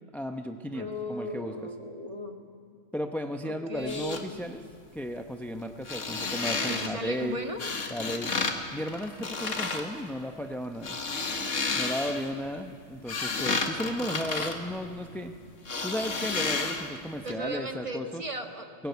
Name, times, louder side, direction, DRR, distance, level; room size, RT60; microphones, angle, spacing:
voice 1, 0.1-1.5 2.9-4.6 4.9-7.4 7.9-8.3 8.7-11.0 11.7-15.3 15.8-18.2 18.8-18.9, equal, ahead, 5 dB, 0.6 m, -34 dB
voice 2, 0.7-2.3 3.4-4.2 6.6-7.6 17.2-18.7, equal, 25° right, 4 dB, 1.6 m, -36 dB
sound 1, 3.8-4.2 5.8-6.9 7.6-8.6 8.8-9.8 10.7-12.3 12.8-15.3 15.7-17.0 17.3-17.4, left 4 dB, 85° left, 2.0 m, -31 dB
22.0 x 18.5 x 8.2 m, 2.5 s
omnidirectional pair, 1.3 m